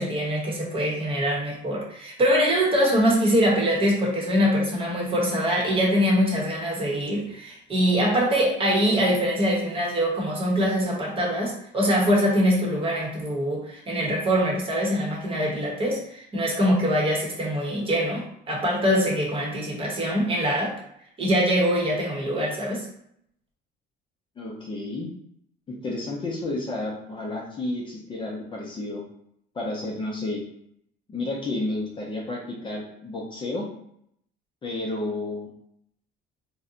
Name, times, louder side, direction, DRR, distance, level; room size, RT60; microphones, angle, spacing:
voice 1, 0.0-20.8 21.2-22.9, equal, 30° right, -2 dB, 1.0 m, -23 dB
voice 2, 24.4-25.1 25.7-29.0 29.5-30.4 31.1-33.7 34.6-35.5, left 2 dB, 25° left, -2 dB, 0.6 m, -31 dB
2.6 x 2.2 x 3.7 m, 0.72 s
cardioid pair, 140°, 19 cm